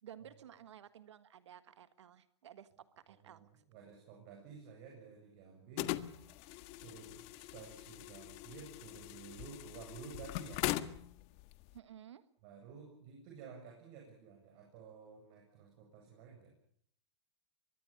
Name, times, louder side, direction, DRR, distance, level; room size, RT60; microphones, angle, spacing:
voice 1, 0.0-3.6 11.7-12.2, right 10 dB, 80° right, 12 dB, 1.6 m, -55 dB
voice 2, 3.1-6.0 6.8-10.6 12.4-16.5, right 6 dB, 55° right, 2 dB, 8.0 m, -53 dB
sound 1, 5.8-11.8, left 16 dB, 45° left, 1.5 m, -41 dB
23.5 x 22.5 x 7.1 m, 0.62 s
hypercardioid pair, 120°, 15 cm